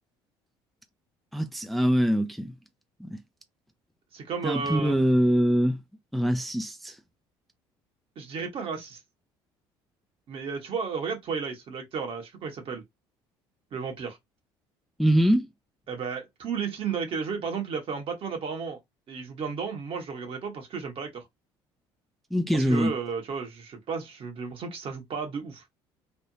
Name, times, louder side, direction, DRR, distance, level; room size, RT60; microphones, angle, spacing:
voice 1, 1.3-2.5 3.0-3.2 4.4-5.8 6.1-7.0 15.0-15.5 22.3-22.9, equal, ahead, 0.5 m, -23 dB
voice 2, 4.1-5.0 8.2-9.0 10.3-12.8 13.7-14.2 15.9-18.8 19.1-21.2 22.5-25.6, right 5 dB, 50° right, 1.4 m, -33 dB
3.4 x 2.5 x 2.8 m
supercardioid pair, 80°, 12 cm